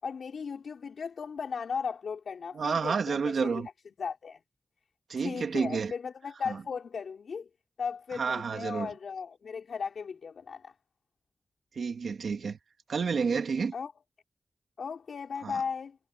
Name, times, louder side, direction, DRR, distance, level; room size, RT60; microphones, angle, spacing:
voice 1, 0.0-3.7 4.0-4.4 5.2-7.5 7.8-10.7 13.7-13.9 14.8-16.0, left 6 dB, 90° left, 5.9 m, -36 dB
voice 2, 2.6-3.7 5.1-5.9 8.2-8.9 11.8-12.6 12.9-13.7 15.4-15.5, right 5 dB, 85° right, 2.4 m, -30 dB
wide cardioid pair, 110°, 0 cm